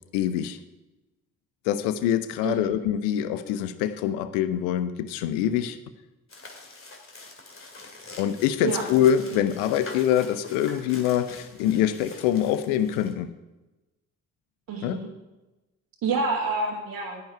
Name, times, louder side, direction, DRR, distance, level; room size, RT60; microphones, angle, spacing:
voice 1, 0.1-0.6 1.7-5.8 8.2-13.3 14.8-15.0, left 10 dB, 75° left, 12 dB, 0.8 m, -24 dB
sound 1, 6.3-13.1, left 3 dB, 30° left, 2.4 m, -45 dB
voice 2, 14.7-15.1 16.0-17.2, right 4 dB, 55° right, -4 dB, 1.8 m, -28 dB
10.5 x 9.7 x 4.6 m, 1.1 s
hypercardioid pair, 45°, 41 cm